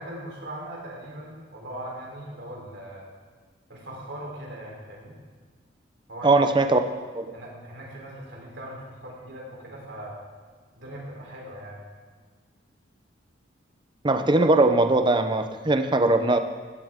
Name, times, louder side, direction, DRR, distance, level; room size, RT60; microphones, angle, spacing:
voice 1, 0.0-3.1 3.7-5.1 6.1-6.4 7.3-10.1 10.8-11.8, right 1 dB, 65° right, -2 dB, 3.7 m, -39 dB
voice 2, 6.2-6.8 7.1-7.3 14.0-16.4, right 2 dB, 25° right, 8 dB, 0.7 m, -20 dB
15.0 x 13.0 x 3.7 m, 1.5 s
head